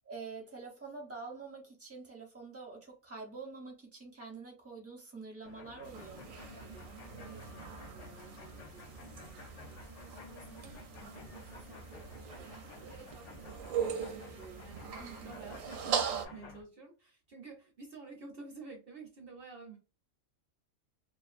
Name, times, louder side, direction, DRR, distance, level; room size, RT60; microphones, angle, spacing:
voice 1, 0.0-6.4 15.0-15.4, right 4 dB, 15° right, 0.5 m, -46 dB
sound 1, 5.4-16.6, left 5 dB, 70° left, 0.9 m, -53 dB
sound 2, 5.8-16.3, right 7 dB, 75° right, 1.0 m, -40 dB
voice 2, 6.5-19.8, right 4 dB, 55° right, 0.7 m, -52 dB
2.4 x 2.4 x 2.4 m
omnidirectional pair, 1.4 m